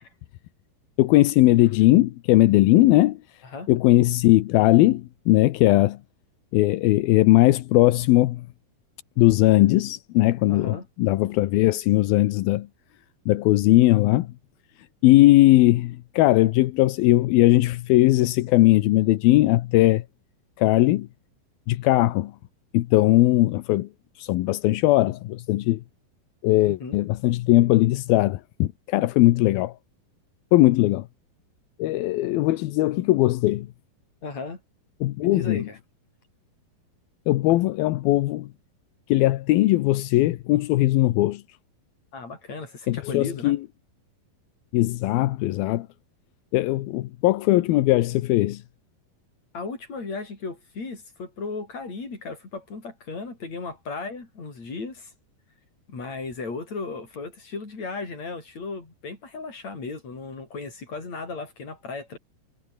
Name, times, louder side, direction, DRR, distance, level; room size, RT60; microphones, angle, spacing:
voice 1, 1.0-3.2 3.7-6.0 6.5-8.5 9.2-12.7 13.3-14.3 15.0-20.0 20.6-21.1 21.7-22.3 22.7-23.9 24.2-25.8 26.4-29.7 30.5-31.1 31.8-33.7 35.0-35.7 37.3-38.5 39.1-41.4 42.9-43.6 44.7-45.9 46.5-48.6, left 17 dB, 80° left, 2.7 m, -19 dB
voice 2, 10.5-10.8 26.7-27.0 34.2-34.6 35.2-35.8 42.1-43.6 49.5-55.1 55.9-62.2, left 4 dB, 45° left, 7.7 m, -35 dB
omnidirectional pair, 4.3 m